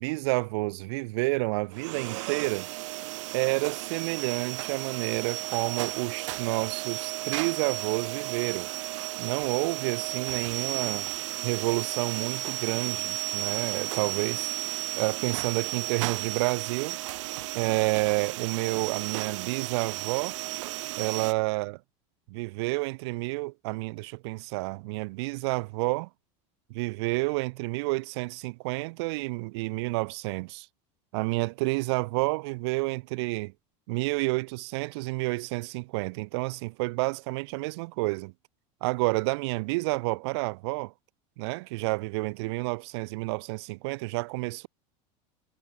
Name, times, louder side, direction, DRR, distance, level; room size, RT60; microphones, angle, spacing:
voice 1, 0.0-2.7 3.3-8.7 9.2-11.1 11.4-14.5 15.0-17.0 17.5-20.4 21.0-21.8 22.3-26.1 26.7-30.7 31.1-33.5 33.9-38.3 38.8-40.9 41.4-44.7, right 25 dB, 60° right, 1.5 m, -30 dB
sound 1, 1.7-21.3, right 19 dB, 85° right, 0.9 m, -34 dB
supercardioid pair, 175°, 16 cm